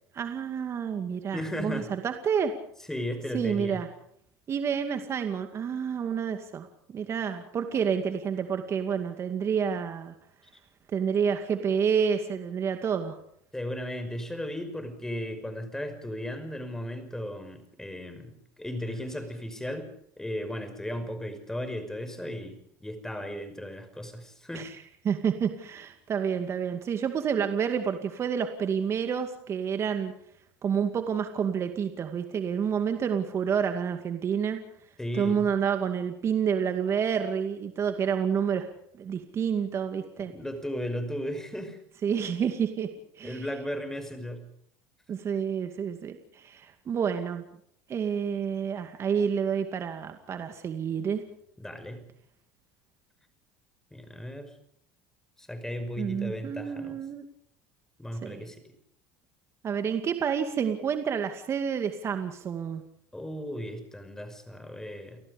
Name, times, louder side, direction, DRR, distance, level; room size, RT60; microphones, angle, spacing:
voice 1, 0.1-2.5 3.3-3.9 4.5-10.1 10.9-13.2 24.5-24.8 25.0-30.1 30.6-34.6 35.1-38.7 39.0-40.3 42.0-42.9 43.2-43.5 45.1-47.4 47.9-51.2 56.0-57.3 58.2-58.4 59.6-62.8, right 7 dB, 40° right, 7 dB, 2.3 m, -29 dB
voice 2, 1.3-1.9 2.9-3.8 13.5-24.7 35.0-35.5 40.2-41.8 43.2-44.5 51.6-52.0 53.9-54.5 55.4-57.0 58.0-58.6 63.1-65.2, equal, 5° left, 9 dB, 5.7 m, -36 dB
30.0 x 18.5 x 5.3 m, 0.68 s
supercardioid pair, 100°, 7 cm